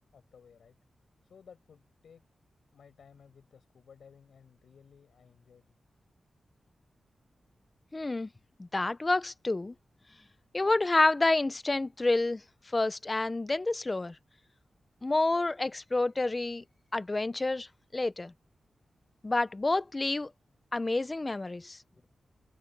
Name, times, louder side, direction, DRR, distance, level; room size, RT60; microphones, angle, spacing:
voice 1, 0.1-0.7 1.2-2.2 2.7-5.7, left 6 dB, 80° left, 6.9 m, -57 dB
voice 2, 7.9-8.3 8.6-9.7 10.5-12.4 12.7-14.2 15.0-16.6 16.9-17.7 17.9-18.3 19.2-20.3 20.7-21.8, left 2 dB, 30° left, 0.9 m, -28 dB
cardioid pair, 80°, 0 cm